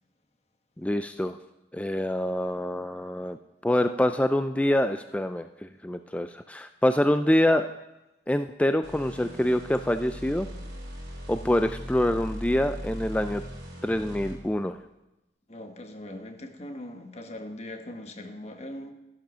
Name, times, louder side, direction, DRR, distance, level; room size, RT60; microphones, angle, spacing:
voice 1, 0.8-1.4 1.7-3.4 3.6-7.7 8.3-10.5 11.3-13.4 13.8-14.8, left 1 dB, 5° left, 9 dB, 0.3 m, -25 dB
sound 1, 8.8-14.6, equal, 60° right, 4.3 m, -39 dB
voice 2, 15.5-18.9, left 1 dB, 35° left, 5 dB, 1.4 m, -40 dB
13.0 x 10.5 x 6.2 m, 0.98 s
head